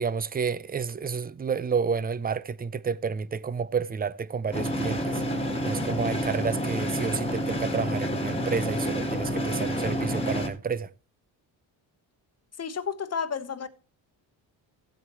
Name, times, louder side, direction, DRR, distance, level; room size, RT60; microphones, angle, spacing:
voice 1, 0.0-5.2 5.6-10.9, right 5 dB, 20° right, 0.5 m, -30 dB
sound 1, 4.5-10.5, equal, 15° left, 1.8 m, -29 dB
voice 2, 12.6-13.7, left 6 dB, 35° left, 1.1 m, -31 dB
15.5 x 7.9 x 3.0 m
cardioid pair, 90°, 43 cm